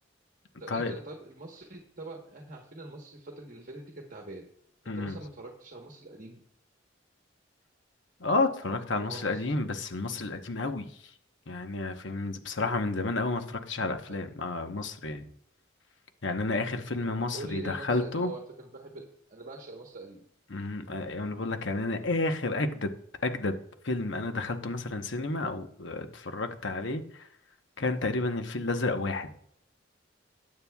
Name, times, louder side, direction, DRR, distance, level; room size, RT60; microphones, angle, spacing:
voice 1, 0.6-4.5 4.9-6.4 8.9-9.5 14.1-14.2 17.0-20.2, right 2 dB, 45° right, 1 dB, 1.2 m, -44 dB
voice 2, 4.9-5.2 8.2-10.9 11.5-15.2 16.2-18.3 20.5-22.9 23.2-23.6 23.8-27.3 27.8-29.3, left 2 dB, 65° left, 7 dB, 1.0 m, -31 dB
20.0 x 8.8 x 2.3 m, 0.65 s
head